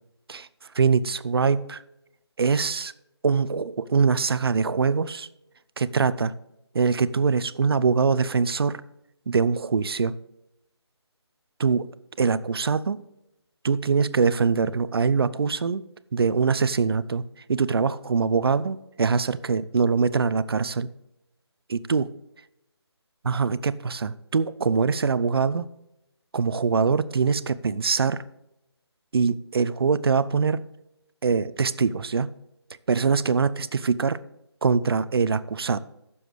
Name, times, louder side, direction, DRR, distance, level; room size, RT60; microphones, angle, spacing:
voice 1, 0.7-1.8 2.4-2.9 3.2-5.3 5.8-6.3 6.7-8.8 9.3-10.1 11.6-11.8 12.2-13.0 13.6-15.8 16.1-17.2 17.5-20.9 21.7-22.1 23.2-25.7 26.3-28.2 29.1-30.6 31.2-32.3 32.9-34.2 34.6-35.8, right 5 dB, 60° right, 0.6 m, -23 dB
16.0 x 7.1 x 3.4 m
figure-of-eight pair, 155°, 14 cm